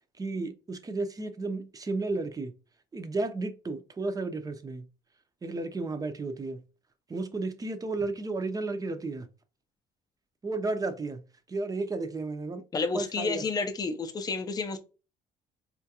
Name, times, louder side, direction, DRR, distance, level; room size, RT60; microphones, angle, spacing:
voice 1, 0.2-2.5 2.9-4.9 5.4-6.6 7.1-9.3 10.4-11.2 11.5-12.6 12.9-13.4, right 3 dB, 20° right, 0.6 m, -33 dB
voice 2, 12.7-14.8, left 4 dB, 25° left, 0.5 m, -30 dB
4.3 x 2.4 x 2.8 m
cardioid pair, 110°, 17 cm